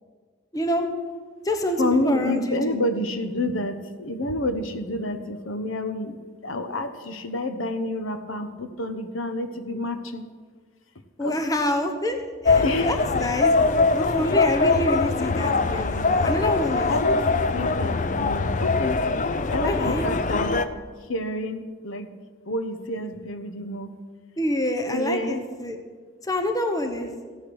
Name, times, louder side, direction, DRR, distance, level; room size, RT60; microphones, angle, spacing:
voice 1, 0.5-0.9 1.4-2.8 11.2-13.5 13.9-16.9 19.6-20.1 24.4-25.8 26.2-27.1, left 1 dB, 15° left, 6 dB, 0.9 m, -27 dB
voice 2, 1.8-6.2 6.4-10.2 11.2-11.4 12.6-13.0 16.9-19.0 19.5-20.7 21.1-22.1 22.4-24.0 24.9-25.4, left 1 dB, 80° left, 9 dB, 1.1 m, -29 dB
sound 1, 12.5-20.7, left 3 dB, 40° left, 0.5 m, -22 dB
14.5 x 10.0 x 6.3 m, 1.6 s
head